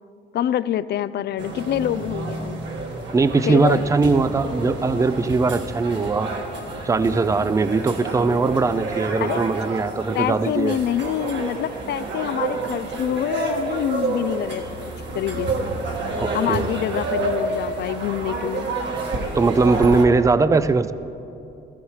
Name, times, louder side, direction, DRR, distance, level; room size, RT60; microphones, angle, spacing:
voice 1, 0.3-2.6 3.5-3.8 9.2-9.4 10.1-15.7 16.3-18.7, left 11 dB, 60° left, 17 dB, 0.4 m, -26 dB
sound 1, 1.4-20.1, right 2 dB, 65° right, 1.8 m, -29 dB
voice 2, 3.1-6.3 6.8-10.8 16.2-16.7 19.4-20.9, right 4 dB, 15° right, 14 dB, 0.4 m, -20 dB
16.0 x 14.5 x 3.2 m, 2.8 s
cardioid pair, 90°, 20 cm